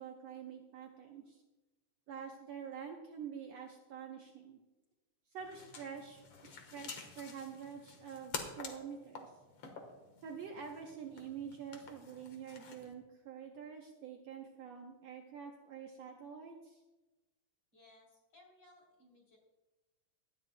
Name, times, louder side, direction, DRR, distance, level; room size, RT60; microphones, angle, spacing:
voice 1, 0.0-1.4 2.1-4.6 5.3-9.3 10.2-16.8, right 7 dB, 65° right, 1 dB, 1.9 m, -47 dB
sound 1, 5.4-12.9, left 5 dB, 55° left, 2.0 m, -49 dB
voice 2, 17.7-19.4, left 2 dB, 35° left, -2 dB, 4.0 m, -63 dB
18.0 x 13.0 x 2.3 m, 1.1 s
omnidirectional pair, 3.6 m